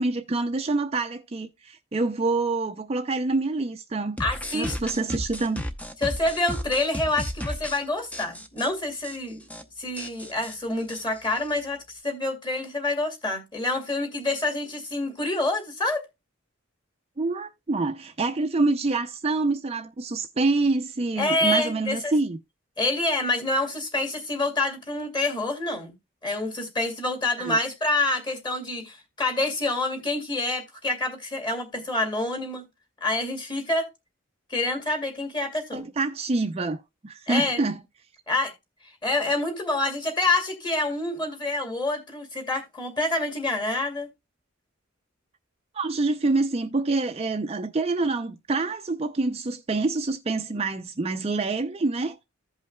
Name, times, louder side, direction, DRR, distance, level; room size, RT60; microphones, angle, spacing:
voice 1, 0.0-4.2 4.5-5.6 17.2-22.4 27.4-27.6 35.7-37.8 45.7-52.2, right 3 dB, 30° right, 0.5 m, -26 dB
voice 2, 4.2-4.8 6.0-9.4 9.8-16.0 21.2-22.1 22.8-25.9 26.2-32.6 33.0-33.9 34.5-35.9 37.3-37.6 38.3-38.5 39.0-44.1, left 2 dB, 20° left, 2.4 m, -27 dB
sound 1, 4.2-7.8 8.1-8.7 9.0-9.2 9.4-9.6 10.0-11.7, equal, 5° left, 0.7 m, -34 dB
15.5 x 5.4 x 2.2 m
head